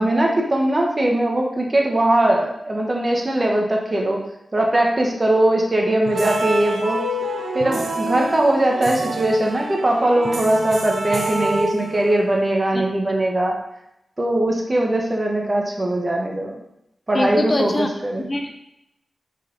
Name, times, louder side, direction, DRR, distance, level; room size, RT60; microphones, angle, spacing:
voice 1, 0.0-4.2 4.5-7.0 7.5-13.6 14.2-16.6 17.1-18.3, right 1 dB, 30° right, 0 dB, 1.3 m, -20 dB
sound 1, 6.1-12.3, right 2 dB, 75° right, 0.8 m, -27 dB
voice 2, 17.1-17.9 18.3-18.6, left 1 dB, 35° left, 4 dB, 0.7 m, -23 dB
5.8 x 5.1 x 4.1 m, 0.81 s
cardioid pair, 70°, 0 cm